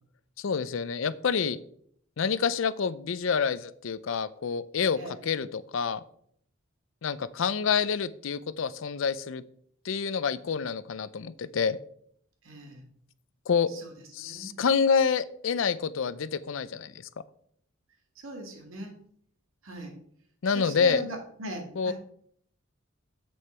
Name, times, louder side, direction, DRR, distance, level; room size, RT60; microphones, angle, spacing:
voice 1, 0.4-1.6 2.2-6.0 7.0-9.4 9.8-11.8 13.5-13.7 14.1-17.0 20.4-21.0 21.8-21.9, left 6 dB, 70° left, 16 dB, 0.5 m, -27 dB
voice 2, 12.4-12.8 13.7-14.6 18.2-19.0 19.6-20.0 20.5-21.9, right 2 dB, 85° right, 3 dB, 2.0 m, -40 dB
7.8 x 6.4 x 4.4 m, 0.64 s
head